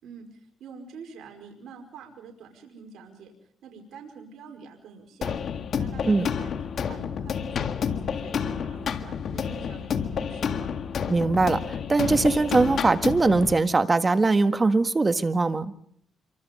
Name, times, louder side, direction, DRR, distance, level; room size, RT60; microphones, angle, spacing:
voice 1, 0.0-3.3 3.6-5.4 5.8-6.5 6.8-10.7, right 5 dB, 75° right, 2 dB, 5.2 m, -46 dB
sound 1, 5.2-13.6, left 7 dB, 60° left, 1.9 m, -30 dB
voice 2, 11.1-15.7, right 3 dB, 25° right, 9 dB, 1.6 m, -21 dB
27.0 x 24.5 x 5.3 m, 0.65 s
cardioid pair, 90°, 0 cm